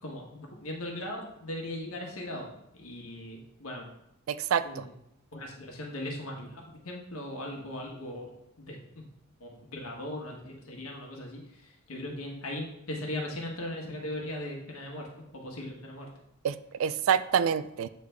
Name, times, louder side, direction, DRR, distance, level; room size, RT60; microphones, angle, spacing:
voice 1, 0.0-2.5 2.7-3.8 4.6-4.9 5.3-8.3 8.6-9.1 9.4-11.4 11.9-15.1 15.4-16.1, left 1 dB, 75° left, 0 dB, 1.4 m, -38 dB
voice 2, 4.3-4.8 16.4-17.9, right 7 dB, 65° right, 15 dB, 0.3 m, -27 dB
8.2 x 3.3 x 3.4 m, 0.78 s
head